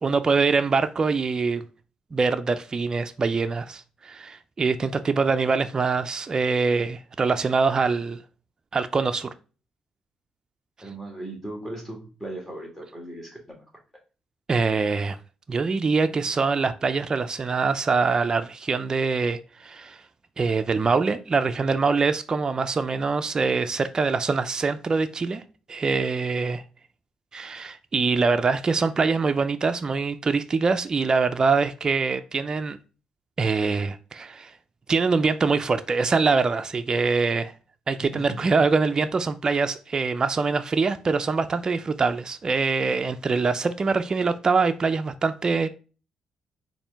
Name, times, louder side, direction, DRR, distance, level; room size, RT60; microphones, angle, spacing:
voice 1, 0.0-1.6 2.1-8.2 8.7-9.3 14.5-15.2 15.5-20.0 20.4-25.4 25.7-26.6 27.3-32.8 33.4-34.5 34.9-37.5 37.9-45.7, right 4 dB, 35° right, 0.3 m, -24 dB
voice 2, 10.8-13.6 38.1-38.4, right 1 dB, 10° left, 1.7 m, -37 dB
4.2 x 2.6 x 3.3 m
cardioid pair, 75°, 2 cm